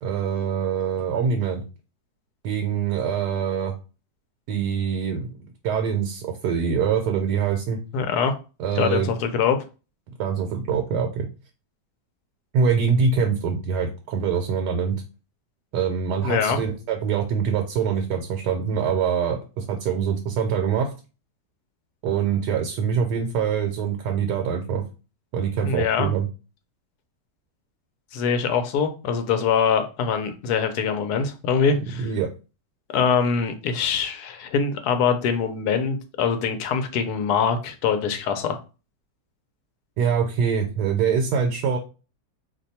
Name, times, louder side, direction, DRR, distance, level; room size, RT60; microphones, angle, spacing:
voice 1, 0.0-1.6 2.4-3.7 4.5-5.3 5.6-7.8 8.6-9.1 10.2-11.3 12.5-15.0 15.7-20.9 22.0-24.8 25.3-26.3 32.0-32.3 40.0-41.8, right 6 dB, 80° right, 3 dB, 1.2 m, -24 dB
voice 2, 7.9-8.3 8.8-9.6 16.2-16.6 25.6-26.1 28.1-32.1 32.9-38.6, left 6 dB, 70° left, 7 dB, 1.1 m, -23 dB
2.8 x 2.2 x 4.1 m, 0.33 s
omnidirectional pair, 1.8 m